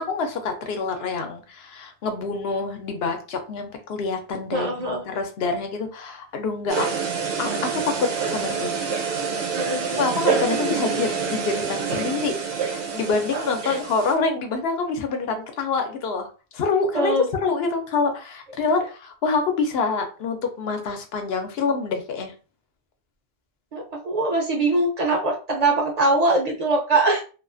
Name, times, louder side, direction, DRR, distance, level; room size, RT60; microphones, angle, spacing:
voice 1, 0.0-6.9 7.4-8.8 10.0-16.3 16.5-22.3, left 4 dB, 80° left, 6 dB, 0.8 m, -26 dB
voice 2, 4.5-5.0 9.5-10.0 13.6-13.8 16.9-17.3 23.7-27.2, right 2 dB, 50° right, 1 dB, 0.5 m, -22 dB
sound 1, 6.7-14.1, right 6 dB, 70° right, 0.9 m, -27 dB
2.4 x 2.3 x 2.4 m, 0.35 s
omnidirectional pair, 1.0 m